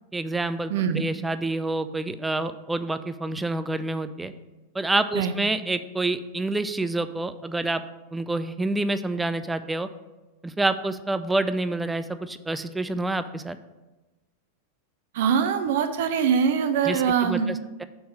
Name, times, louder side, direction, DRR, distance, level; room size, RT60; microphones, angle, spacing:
voice 1, 0.1-4.3 4.7-7.8 8.1-9.9 10.4-13.6 16.8-17.8, right 2 dB, 10° right, 11 dB, 0.3 m, -28 dB
voice 2, 0.7-1.0 5.1-5.3 15.1-17.5, right 7 dB, 55° right, 9 dB, 0.6 m, -23 dB
5.4 x 4.3 x 6.2 m, 1.1 s
figure-of-eight pair, 90°, 0 cm